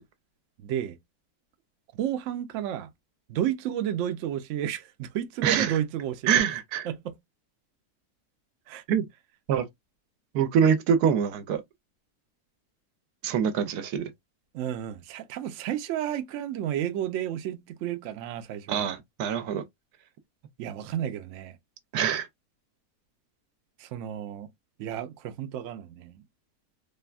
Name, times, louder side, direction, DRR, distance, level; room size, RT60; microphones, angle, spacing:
voice 1, 0.6-1.0 1.9-2.9 3.3-6.3 6.8-7.2 8.7-8.8 14.5-18.9 20.6-21.6 23.8-24.5 24.8-26.2, right 11 dB, 70° right, 0.8 m, -32 dB
voice 2, 5.4-5.8 6.3-6.9 8.9-9.1 9.5-9.7 10.3-11.6 13.2-14.1 18.7-19.6 21.9-22.3, right 8 dB, 85° right, 1.1 m, -24 dB
3.4 x 2.2 x 2.3 m
omnidirectional pair, 1.6 m